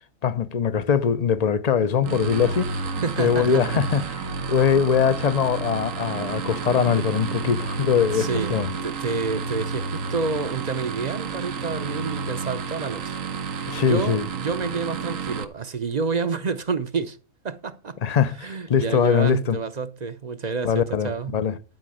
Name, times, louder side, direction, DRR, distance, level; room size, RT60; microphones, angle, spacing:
voice 1, 0.2-2.7 3.2-4.0 4.5-8.7 13.7-14.2 18.0-19.6 20.6-21.6, left 7 dB, 40° left, 0.6 m, -22 dB
sound 1, 2.0-15.4, right 4 dB, 85° right, 1.3 m, -30 dB
voice 2, 3.0-3.9 8.1-13.2 13.5-17.2 17.4-18.0 18.4-21.4, right 4 dB, 40° right, 0.7 m, -29 dB
12.0 x 5.1 x 7.7 m
omnidirectional pair, 1.3 m